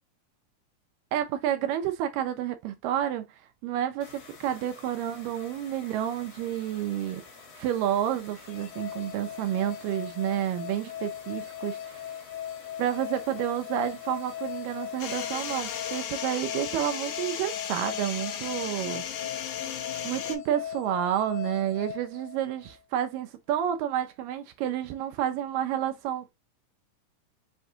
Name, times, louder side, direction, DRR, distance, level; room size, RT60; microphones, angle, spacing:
voice 1, 1.1-3.3 3.6-7.2 7.6-12.0 12.8-19.0 20.0-26.3, right 11 dB, 80° right, 2.2 m, -30 dB
sound 1, 4.0-16.0, left 4 dB, 50° left, 2.4 m, -50 dB
sound 2, 8.4-22.8, left 10 dB, 90° left, 2.3 m, -39 dB
sound 3, 15.0-20.4, left 8 dB, 70° left, 1.9 m, -36 dB
5.8 x 2.5 x 2.6 m
omnidirectional pair, 4.0 m